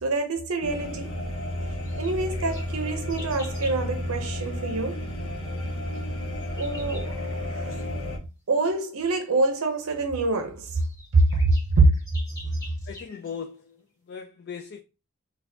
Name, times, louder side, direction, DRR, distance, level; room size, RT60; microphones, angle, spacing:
voice 1, 0.0-1.2 2.0-5.1 6.6-7.8 8.5-10.8 11.1-11.4 11.8-11.9 12.4-12.5, right 3 dB, 75° right, 0.6 m, -25 dB
sound 1, 0.6-8.2, left 1 dB, 80° left, 1.0 m, -32 dB
sound 2, 1.8-3.8 5.9-7.9 9.7-9.8 10.4-10.5 10.7-13.4, left 1 dB, 15° left, 1.7 m, -47 dB
voice 2, 12.9-14.8, left 6 dB, 50° left, 0.3 m, -39 dB
4.0 x 2.3 x 2.6 m
head